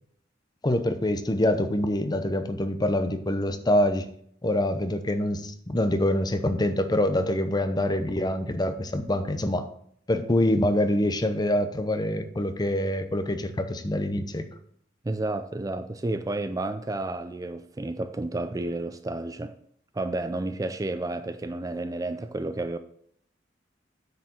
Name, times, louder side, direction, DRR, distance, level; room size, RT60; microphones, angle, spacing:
voice 1, 0.6-4.1 4.4-9.7 10.1-14.4, left 1 dB, 20° left, 0.8 m, -25 dB
voice 2, 15.0-19.5 19.9-22.8, right 2 dB, 20° right, 0.4 m, -31 dB
9.3 x 4.8 x 6.3 m
head